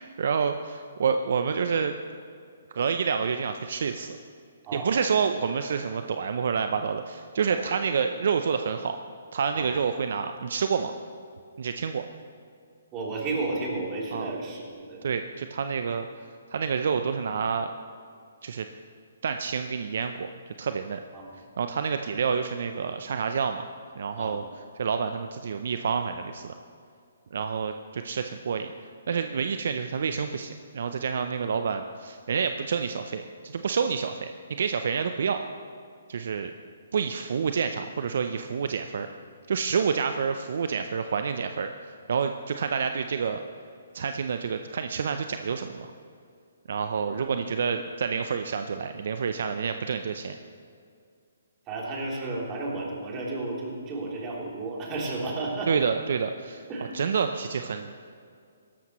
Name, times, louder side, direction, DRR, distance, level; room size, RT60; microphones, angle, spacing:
voice 1, 0.0-1.9 2.7-4.2 4.7-9.0 9.3-10.9 11.6-12.1 14.1-14.3 15.0-16.1 16.5-17.7 18.4-18.7 19.2-21.0 21.6-23.7 24.0-26.5 27.3-35.4 36.1-36.5 36.9-39.1 39.5-43.4 43.9-45.9 46.7-50.4 55.7-56.6 56.9-57.9, right 6 dB, 60° right, 8 dB, 0.6 m, -28 dB
voice 2, 12.9-15.0 21.1-21.4 24.2-24.5 47.2-47.3 51.7-55.7 56.7-56.9, right 2 dB, 25° right, -3 dB, 3.2 m, -33 dB
17.0 x 13.0 x 3.1 m, 2.3 s
hypercardioid pair, 140°, 0 cm